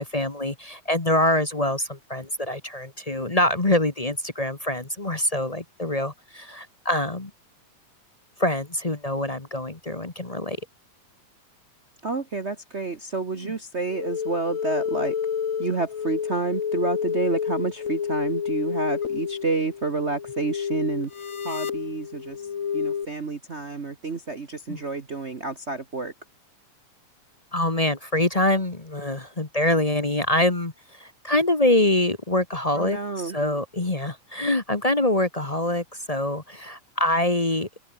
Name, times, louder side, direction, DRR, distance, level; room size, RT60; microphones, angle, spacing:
voice 1, 0.0-7.3 8.4-10.6 13.4-13.5 24.7-24.8 27.5-37.7, left 1 dB, 25° left, 0.7 m, -25 dB
voice 2, 12.0-15.2 15.6-21.1 21.4-22.4 22.7-26.1 32.7-33.4, right 4 dB, 65° right, 0.6 m, -29 dB
sound 1, 13.9-23.0, left 7 dB, 80° left, 0.7 m, -29 dB
open air
omnidirectional pair, 3.5 m